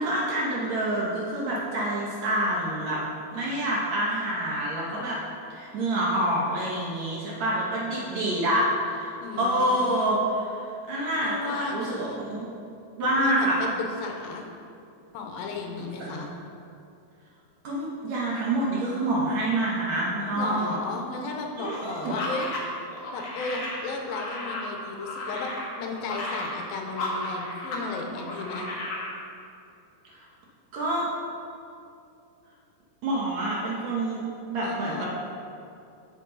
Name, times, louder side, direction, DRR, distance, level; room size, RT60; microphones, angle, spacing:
voice 1, 0.0-3.0 3.3-5.2 5.5-12.5 13.0-13.6 16.0-16.3 17.6-20.8 21.6-22.1 30.1-30.3 30.7-31.1 33.0-34.2 34.5-35.1, right 1 dB, 65° right, -5 dB, 1.9 m, -27 dB
voice 2, 9.2-10.2 11.2-12.2 13.0-14.5 15.1-16.3 20.4-22.5 23.1-28.7 34.6-35.1, left 3 dB, 85° left, 2 dB, 2.5 m, -34 dB
sound 1, 22.0-27.9 28.1-29.1, left 1 dB, 65° left, 1.3 m, -34 dB
8.3 x 8.1 x 3.8 m, 2.6 s
omnidirectional pair, 4.2 m